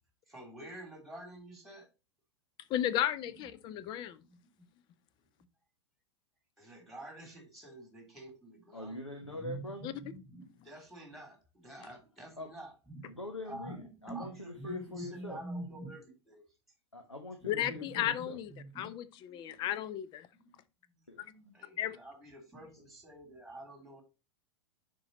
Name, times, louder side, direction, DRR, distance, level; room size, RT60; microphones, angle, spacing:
voice 1, 0.3-1.9 3.4-3.5 4.3-4.5 6.6-9.0 9.3-13.2 13.5-16.5 17.4-19.7 20.3-20.6 21.2-24.0, right 1 dB, ahead, 3.3 m, -47 dB
voice 2, 2.7-4.2 9.8-9.9 17.5-18.5 18.8-20.3 21.8-22.0, left 11 dB, 30° left, 0.7 m, -34 dB
voice 3, 8.7-10.0 12.4-12.5 13.0-15.4 16.9-18.4 21.1-21.3, left 1 dB, 85° left, 1.3 m, -43 dB
10.5 x 4.6 x 3.0 m
figure-of-eight pair, 95°, 15 cm